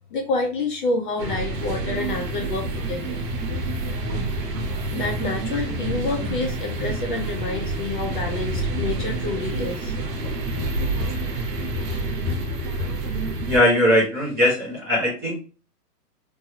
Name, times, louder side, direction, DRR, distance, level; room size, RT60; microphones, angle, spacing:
voice 1, 0.1-3.2 4.1-4.3 4.9-9.9, left 3 dB, 35° left, 1 dB, 0.6 m, -28 dB
sound 1, 1.2-13.6, right 2 dB, 85° right, 1.0 m, -28 dB
voice 2, 13.4-15.5, left 1 dB, 15° right, -6 dB, 0.5 m, -20 dB
3.1 x 2.2 x 2.7 m, 0.35 s
hypercardioid pair, 135°, 49 cm